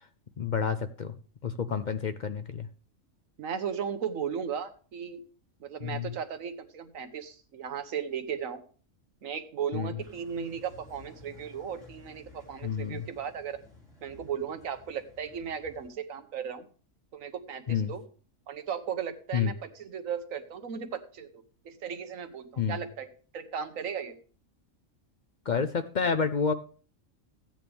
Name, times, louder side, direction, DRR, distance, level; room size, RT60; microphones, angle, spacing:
voice 1, 0.4-1.1 1.4-2.7 5.8-6.1 9.7-10.0 12.6-13.1 17.7-17.9 19.3-19.5 22.6-22.8 25.5-26.5, left 6 dB, 55° left, 10 dB, 0.5 m, -29 dB
voice 2, 3.4-5.2 5.6-8.6 9.2-13.6 14.0-16.6 17.1-18.0 18.5-23.1 23.3-24.1, right 7 dB, 90° right, 9 dB, 1.4 m, -36 dB
sound 1, 10.0-15.9, left 2 dB, 70° left, 4.4 m, -54 dB
14.5 x 9.0 x 3.5 m, 0.41 s
omnidirectional pair, 1.3 m